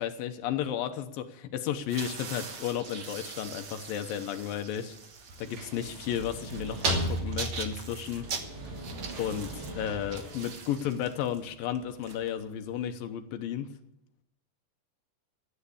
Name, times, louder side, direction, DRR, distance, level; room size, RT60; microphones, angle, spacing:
voice 1, 0.0-5.0 5.4-8.3 9.2-13.7, left 9 dB, 85° left, 7 dB, 2.7 m, -33 dB
sound 1, 1.8-12.8, right 5 dB, 85° right, 0.9 m, -43 dB
sound 2, 5.2-11.2, right 1 dB, 55° right, 4.0 m, -36 dB
13.5 x 9.3 x 8.5 m, 0.81 s
omnidirectional pair, 4.0 m